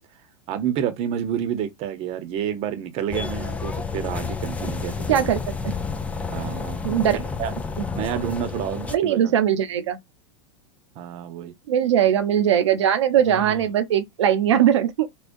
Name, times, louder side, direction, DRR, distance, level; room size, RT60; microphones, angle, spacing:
voice 1, 0.5-5.4 6.3-6.8 7.4-7.5 7.9-9.3 11.0-11.5 13.3-13.5, right 9 dB, 45° right, 0.8 m, -29 dB
sound 1, 3.1-9.0, left 5 dB, 10° left, 0.4 m, -30 dB
voice 2, 5.1-5.4 5.6-5.7 6.8-7.2 8.9-10.0 11.7-15.1, right 10 dB, 80° right, 0.8 m, -20 dB
3.6 x 2.3 x 2.6 m
hypercardioid pair, 110°, 15 cm